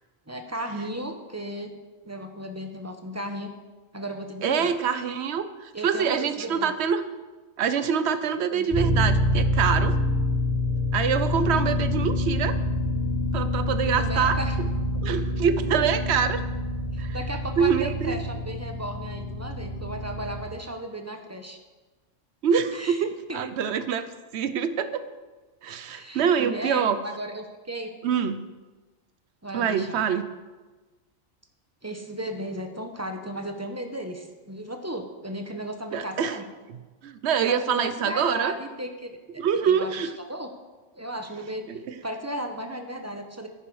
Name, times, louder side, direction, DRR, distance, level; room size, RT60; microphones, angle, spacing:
voice 1, 0.3-1.7 2.0-3.5 3.9-4.7 5.7-6.7 8.5-8.7 13.8-14.5 16.9-21.6 22.7-23.4 25.9-27.9 29.4-30.0 31.8-36.4 37.5-40.0 40.3-40.5 40.9-43.5, right 1 dB, 15° right, 5 dB, 0.8 m, -35 dB
voice 2, 4.4-7.0 7.6-9.9 10.9-12.6 13.3-14.4 15.0-16.4 17.0-17.2 17.6-18.2 22.4-24.1 24.3-25.1 25.6-27.0 28.0-28.4 29.5-30.2 35.9-36.4 37.0-38.5 39.4-40.1 41.7-41.9, right 7 dB, 65° right, 12 dB, 0.9 m, -25 dB
sound 1, 8.7-20.4, left 1 dB, 25° left, 2.8 m, -26 dB
10.0 x 10.0 x 4.8 m, 1.3 s
omnidirectional pair, 1.3 m